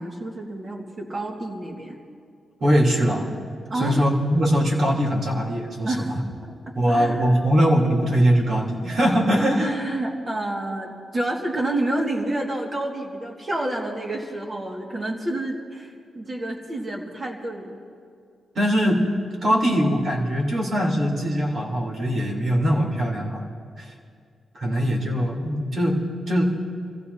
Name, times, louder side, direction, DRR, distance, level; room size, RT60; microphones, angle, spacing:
voice 1, 0.0-2.0 3.7-4.0 5.8-6.2 6.9-7.4 9.6-17.8 19.5-19.8, right 1 dB, 30° right, -1 dB, 2.0 m, -29 dB
voice 2, 2.6-3.3 3.7-6.0 6.7-9.7 18.5-19.0 19.4-23.4 23.8-23.9 24.5-26.0 26.3-26.4, equal, 55° right, -2 dB, 3.4 m, -21 dB
29.0 x 15.5 x 2.8 m, 2.2 s
wide cardioid pair, 130°, 0 cm